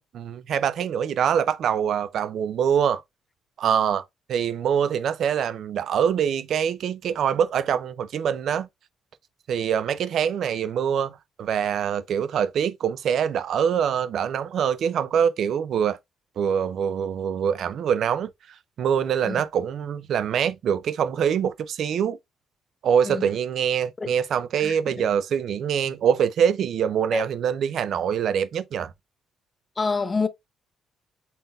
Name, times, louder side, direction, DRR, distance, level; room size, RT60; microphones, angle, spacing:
voice 1, 0.0-3.0 3.6-8.7 9.5-16.0 16.4-18.3 18.8-22.2 22.8-28.9, right 8 dB, 60° right, 0.3 m, -24 dB
voice 2, 29.8-30.3, left 4 dB, 25° left, 0.4 m, -26 dB
4.0 x 3.8 x 2.3 m
cardioid pair, 125°, 0 cm